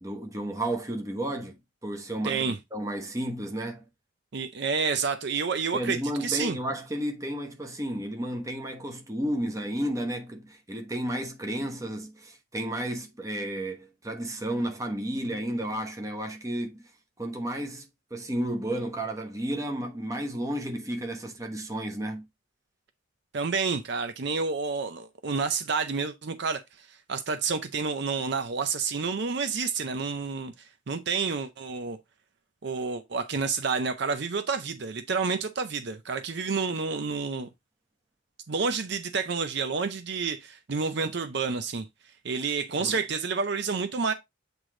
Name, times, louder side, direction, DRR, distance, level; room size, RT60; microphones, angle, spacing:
voice 1, 0.0-3.8 5.7-16.9 17.2-22.2 42.8-43.0, right 1 dB, 15° right, 1.0 m, -32 dB
voice 2, 2.2-2.6 4.3-6.6 23.3-32.0 32.6-37.5 38.5-41.9 42.2-44.1, right 5 dB, 55° right, 0.5 m, -29 dB
8.1 x 3.2 x 3.7 m
head